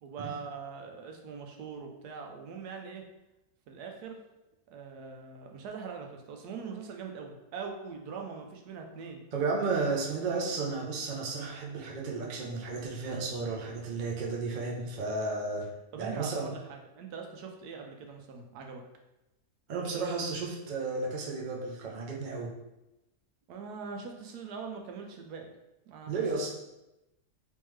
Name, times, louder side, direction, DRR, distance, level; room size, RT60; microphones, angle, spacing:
voice 1, 0.0-3.0 3.7-4.2 4.7-9.2 15.9-18.8 23.5-25.6 25.9-26.5, right 5 dB, 85° right, 3 dB, 1.2 m, -42 dB
voice 2, 9.3-15.7 15.9-16.5 19.7-22.5 26.1-26.5, right 3 dB, 50° right, -2 dB, 0.6 m, -33 dB
3.5 x 3.1 x 3.1 m, 0.93 s
omnidirectional pair, 1.6 m